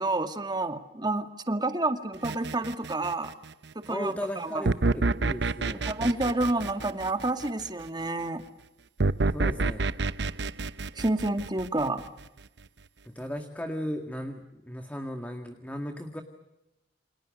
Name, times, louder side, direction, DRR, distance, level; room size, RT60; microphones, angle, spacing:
voice 1, 0.0-3.3 3.8-4.7 5.8-8.4 11.0-12.0, right 2 dB, 25° right, 8 dB, 2.0 m, -29 dB
sound 1, 2.2-3.4 4.7-7.7 9.0-12.2, right 3 dB, 70° right, 0.9 m, -28 dB
voice 2, 3.9-5.9 9.3-9.9 13.1-16.2, equal, 10° left, 6 dB, 1.9 m, -36 dB
29.0 x 27.0 x 6.6 m, 0.92 s
head